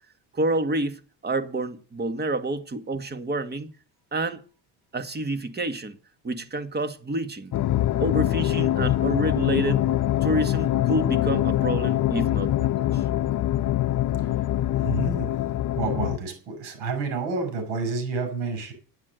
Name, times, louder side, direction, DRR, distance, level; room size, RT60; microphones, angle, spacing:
voice 1, 0.3-3.7 4.1-4.4 4.9-6.0 6.2-7.5 8.0-9.8 10.2-12.7 12.9-13.0, right 2 dB, 20° right, 1.7 m, -28 dB
sound 1, 7.5-16.2, left 13 dB, 45° left, 0.8 m, -24 dB
voice 2, 14.2-15.3 15.8-18.7, right 4 dB, 70° right, 7.0 m, -30 dB
9.9 x 9.7 x 7.9 m
supercardioid pair, 95°, 44 cm